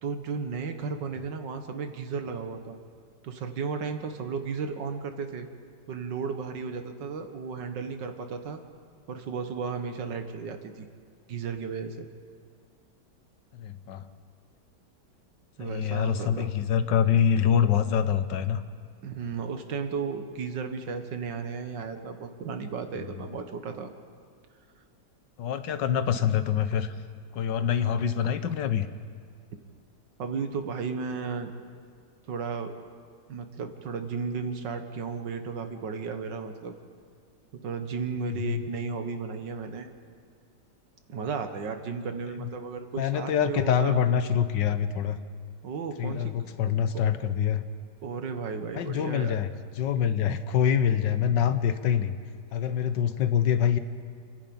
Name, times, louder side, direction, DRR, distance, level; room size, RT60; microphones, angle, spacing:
voice 1, 0.0-2.8 3.2-5.5 5.9-8.6 9.1-10.9 11.3-12.1 15.6-16.5 19.0-23.9 30.2-31.5 32.3-32.7 33.3-36.7 37.5-39.9 41.1-44.0 45.6-46.3 46.6-46.8 48.0-49.4 51.3-51.4 53.1-53.2, right 5 dB, 90° right, 7 dB, 2.0 m, -34 dB
voice 2, 13.5-14.1 15.6-18.6 25.4-26.9 27.3-28.9 38.2-38.6 42.4-42.5 43.0-45.2 46.0-47.6 48.7-49.5 49.8-52.2 52.5-53.8, left 8 dB, 90° left, 11 dB, 1.6 m, -25 dB
28.5 x 11.0 x 8.8 m, 2.2 s
omnidirectional pair, 1.9 m